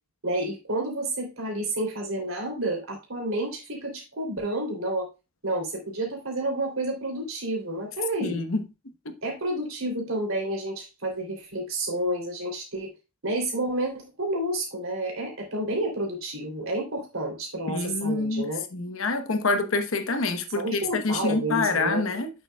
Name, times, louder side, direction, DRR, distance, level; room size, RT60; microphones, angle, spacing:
voice 1, 0.2-5.1 5.4-8.4 9.2-12.9 13.2-18.6 20.5-22.0, right 1 dB, 80° right, 3.1 m, -30 dB
voice 2, 8.2-8.6 9.0-9.2 17.7-22.3, left 3 dB, 75° left, 1.0 m, -27 dB
8.5 x 6.9 x 2.3 m
head